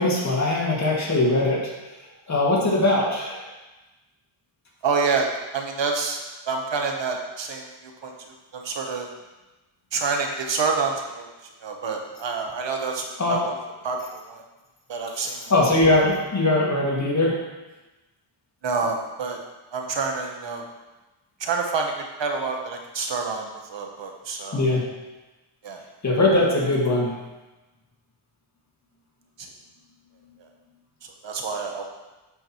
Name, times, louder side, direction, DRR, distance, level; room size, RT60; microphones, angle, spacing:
voice 1, 0.0-1.6 2.3-3.4 13.2-13.3 15.5-17.4 24.5-24.8 26.0-27.1, left 2 dB, 35° left, -4 dB, 2.0 m, -21 dB
voice 2, 4.8-6.2 6.5-8.1 8.5-9.1 9.9-11.3 11.6-13.0 13.3-13.5 13.8-14.4 14.9-15.5 18.6-19.4 19.7-20.6 21.4-21.9 22.2-24.7 25.6-25.8 29.4-29.5 31.2-31.8, right 4 dB, 60° right, 2 dB, 1.1 m, -27 dB
8.0 x 5.8 x 3.0 m, 1.1 s
wide cardioid pair, 100°, 49 cm